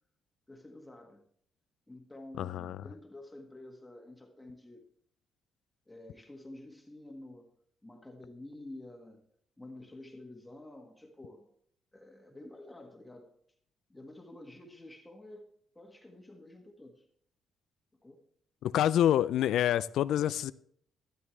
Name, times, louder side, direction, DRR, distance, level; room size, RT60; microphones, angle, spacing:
voice 1, 0.5-1.2 1.9-4.8 5.9-7.5 7.8-9.2 9.6-11.5 11.9-13.3 13.9-15.5 15.7-17.0 18.0-18.2, left 1 dB, 10° left, 2 dB, 1.6 m, -49 dB
voice 2, 2.4-2.8 18.6-20.5, left 11 dB, 80° left, 17 dB, 0.3 m, -27 dB
12.5 x 12.5 x 3.2 m, 0.65 s
cardioid pair, 90°, 0 cm